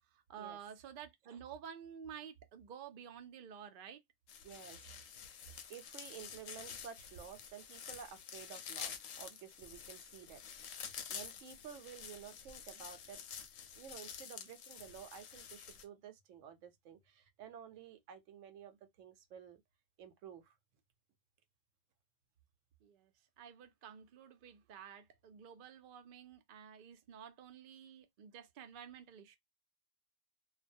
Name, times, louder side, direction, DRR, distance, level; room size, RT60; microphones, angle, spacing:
voice 1, 0.1-4.0 22.8-29.4, right 8 dB, 60° right, 0.5 m, -51 dB
sound 1, 4.3-15.8, left 8 dB, 85° left, 1.0 m, -49 dB
voice 2, 4.4-4.8 5.7-10.7 11.1-13.2 13.8-19.6 20.0-20.6, right 8 dB, 75° right, 0.9 m, -52 dB
2.3 x 2.1 x 2.5 m
omnidirectional pair, 1.3 m